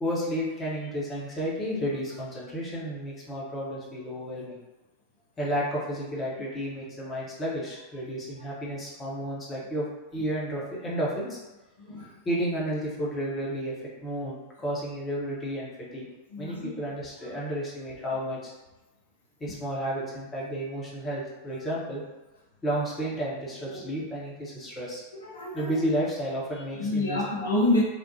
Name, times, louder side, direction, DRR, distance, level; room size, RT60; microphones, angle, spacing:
voice 1, 0.0-4.6 5.4-9.9 10.1-11.4 12.0-13.7 14.0-16.0 16.4-18.5 19.4-22.0 22.6-25.0 25.5-27.2, equal, 20° left, -6 dB, 0.8 m, -32 dB
voice 2, 16.3-17.0 19.5-19.6 23.7-24.1 25.1-25.8 26.8-27.8, left 2 dB, 70° left, -3 dB, 0.5 m, -28 dB
2.8 x 2.0 x 2.7 m, 1.1 s
figure-of-eight pair, 90°, 0 cm